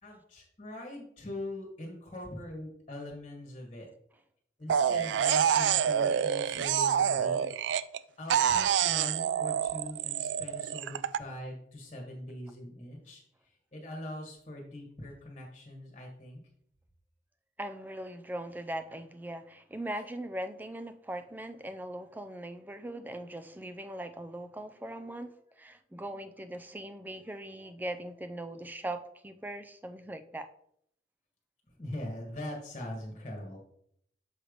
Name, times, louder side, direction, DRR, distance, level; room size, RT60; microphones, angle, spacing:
voice 1, 0.0-3.9 4.6-7.4 8.2-16.4 31.8-33.6, left 1 dB, 35° left, 0 dB, 1.4 m, -42 dB
sound 1, 4.7-8.0 8.3-11.2, right 8 dB, 85° right, 0.3 m, -27 dB
voice 2, 17.6-30.5, right 1 dB, 10° right, 9 dB, 0.4 m, -40 dB
7.1 x 3.3 x 5.0 m, 0.69 s
head